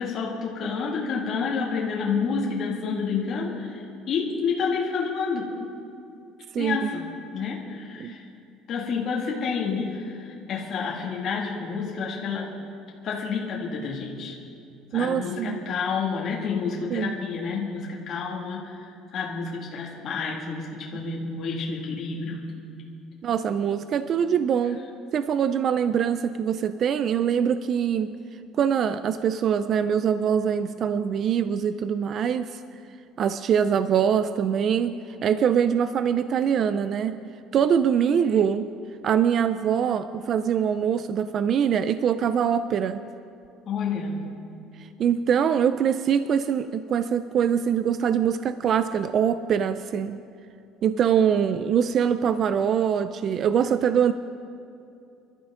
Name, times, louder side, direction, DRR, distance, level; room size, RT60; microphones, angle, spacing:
voice 1, 0.0-5.5 6.6-7.1 7.3-8.2 8.7-12.6 13.0-14.4 14.9-22.4 43.7-44.2, left 5 dB, 40° left, -3 dB, 2.1 m, -29 dB
voice 2, 6.5-6.9 8.0-8.1 14.9-15.6 16.9-17.2 23.2-24.8 25.1-28.1 28.5-32.6 33.2-37.2 37.5-38.7 39.0-43.0 44.8-50.2 50.8-54.1, right 8 dB, 40° right, 11 dB, 0.4 m, -23 dB
26.5 x 13.0 x 3.8 m, 2.6 s
cardioid pair, 165°, 0 cm